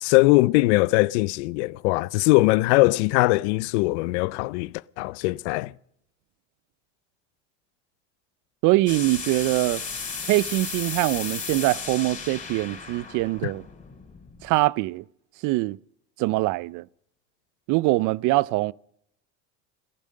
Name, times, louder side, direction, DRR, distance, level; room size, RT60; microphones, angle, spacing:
voice 1, 0.0-5.7 13.4-13.5, left 22 dB, 80° left, 0.5 m, -21 dB
voice 2, 8.6-9.8 10.3-13.6 14.4-15.0 15.4-15.8 16.2-16.8 17.7-18.7, right 20 dB, 60° right, 0.5 m, -23 dB
sound 1, 8.9-14.5, left 5 dB, 25° left, 4.2 m, -35 dB
18.0 x 12.0 x 6.5 m
supercardioid pair, 90°, 34 cm